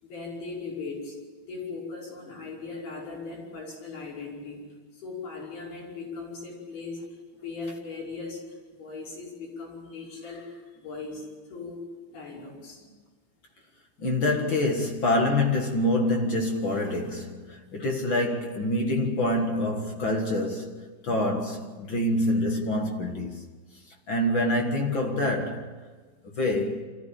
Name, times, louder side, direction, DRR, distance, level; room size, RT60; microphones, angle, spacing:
voice 1, 0.0-11.8 12.1-12.9, left 4 dB, 85° left, 7.4 m, -39 dB
voice 2, 14.0-23.4 24.1-25.7 26.4-26.8, left 1 dB, 45° left, 1.8 m, -26 dB
25.5 x 14.5 x 8.7 m
omnidirectional pair, 4.4 m